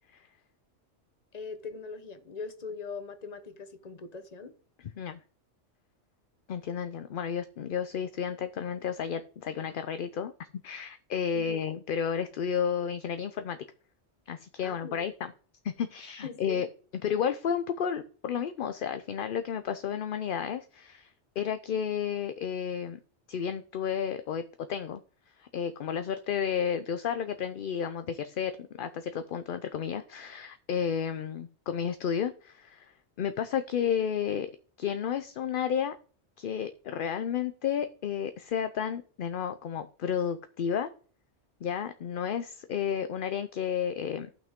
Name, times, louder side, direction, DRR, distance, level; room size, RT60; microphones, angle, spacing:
voice 1, 1.3-4.5 11.3-11.6 14.6-15.1 16.2-16.6, left 4 dB, 40° left, 1.1 m, -41 dB
voice 2, 6.5-10.3 10.6-13.6 14.3-15.3 15.6-16.7 17.0-21.1 21.4-23.0 23.3-24.4 24.7-25.0 25.4-28.5 28.8-32.9 33.2-34.5 34.8-36.0 36.4-40.9 41.6-44.3, left 8 dB, 55° left, 0.7 m, -32 dB
14.0 x 6.1 x 3.6 m
omnidirectional pair, 1.2 m